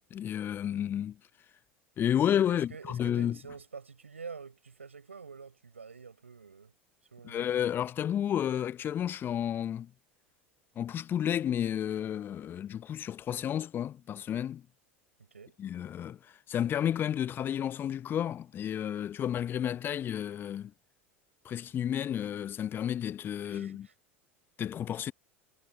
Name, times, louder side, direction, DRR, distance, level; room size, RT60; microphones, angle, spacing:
voice 1, 0.1-1.2 2.0-3.4 7.2-9.9 10.8-14.6 15.6-20.7 21.4-23.9 24.6-25.1, left 10 dB, 30° left, 1.1 m, -31 dB
voice 2, 2.5-6.7 7.1-7.6 15.3-15.6 23.4-23.9, right 5 dB, 80° right, 6.0 m, -47 dB
figure-of-eight pair, 75°, 7 cm